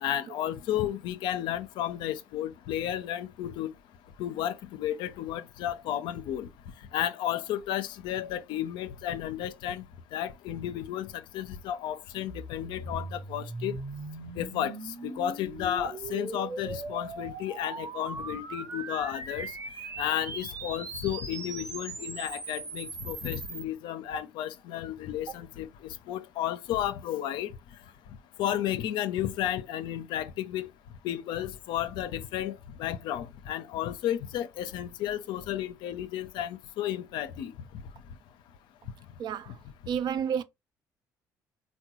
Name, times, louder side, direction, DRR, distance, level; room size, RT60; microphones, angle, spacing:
voice 1, 0.0-3.7 4.2-6.5 6.9-9.8 10.1-13.8 14.4-14.8 15.0-19.5 20.0-25.7 26.1-27.5 28.4-30.7 31.0-37.5 39.5-39.6, left 11 dB, 75° left, 0.4 m, -33 dB
sound 1, 12.3-23.6, right 3 dB, 40° right, 0.8 m, -39 dB
voice 2, 39.2-39.5 39.9-40.4, right 8 dB, 65° right, 0.4 m, -30 dB
3.5 x 2.1 x 2.9 m
supercardioid pair, 65°, 8 cm